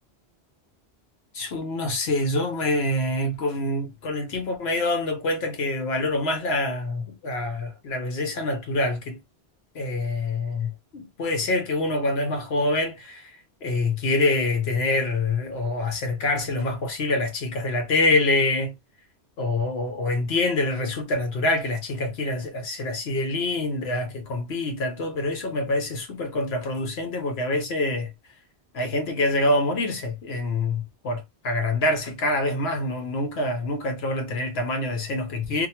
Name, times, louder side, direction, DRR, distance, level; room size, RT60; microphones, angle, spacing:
voice 1, 1.3-9.2 9.7-13.4 13.6-18.7 19.4-28.1 28.7-35.7, left 2 dB, 70° left, 1.1 m, -26 dB
2.9 x 2.2 x 2.8 m
omnidirectional pair, 1.1 m